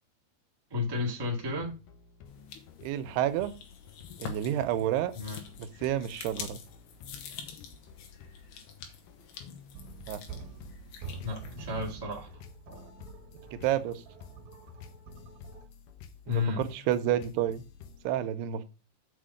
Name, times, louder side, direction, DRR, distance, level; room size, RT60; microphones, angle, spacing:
voice 1, 0.7-1.7 5.1-5.4 11.2-12.3 16.3-16.6, left 4 dB, 35° right, 0.3 m, -32 dB
sound 1, 1.3-18.1, left 6 dB, 70° left, 2.3 m, -52 dB
sound 2, 2.3-12.0, left 7 dB, 90° left, 3.3 m, -47 dB
voice 2, 2.8-3.5 4.2-5.1 5.6-6.6 10.1-10.2 13.5-14.0 16.3-17.6 18.0-18.6, right 11 dB, 85° right, 2.8 m, -30 dB
sound 3, 9.7-15.7, right 4 dB, 60° right, 2.4 m, -46 dB
6.3 x 5.7 x 6.3 m
omnidirectional pair, 4.6 m